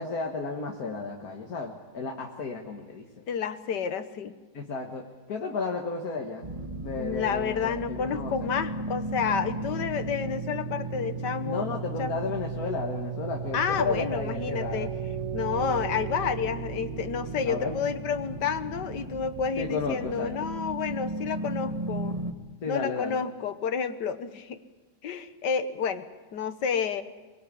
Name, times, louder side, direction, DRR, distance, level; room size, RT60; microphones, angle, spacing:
voice 1, 0.0-3.2 4.5-5.0 5.3-6.4 6.8-8.5 11.5-14.9 17.5-17.8 19.6-20.3 22.6-23.2, left 4 dB, 60° left, 1 dB, 2.1 m, -33 dB
voice 2, 3.3-4.4 7.0-11.7 12.0-12.3 13.5-14.9 15.3-22.2 22.7-24.6 25.0-27.0, left 6 dB, 80° left, 11 dB, 1.8 m, -30 dB
sound 1, 6.4-22.3, right 3 dB, 20° right, 1.3 m, -35 dB
25.0 x 21.5 x 8.4 m, 1.3 s
omnidirectional pair, 1.8 m